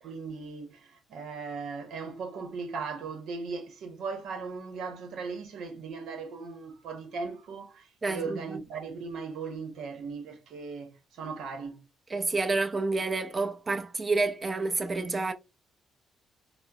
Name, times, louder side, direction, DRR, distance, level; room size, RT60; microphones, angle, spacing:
voice 1, 0.0-11.9, right 4 dB, 75° right, 0.9 m, -38 dB
voice 2, 8.0-8.6 12.1-15.3, right 3 dB, 30° right, 0.6 m, -29 dB
4.3 x 2.0 x 2.3 m
cardioid pair, 90°, 0 cm